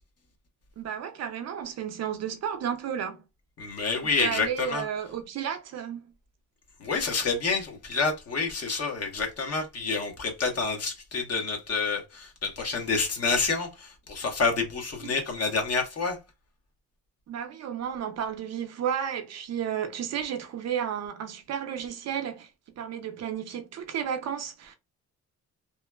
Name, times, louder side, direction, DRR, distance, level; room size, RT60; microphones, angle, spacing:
voice 1, 0.8-3.2 4.0-6.1 15.0-15.2 17.3-24.8, right 8 dB, 60° right, 0.6 m, -33 dB
voice 2, 3.6-4.8 6.8-16.2, left 4 dB, 55° left, 1.1 m, -28 dB
3.0 x 2.1 x 2.2 m
cardioid pair, 90°, 30 cm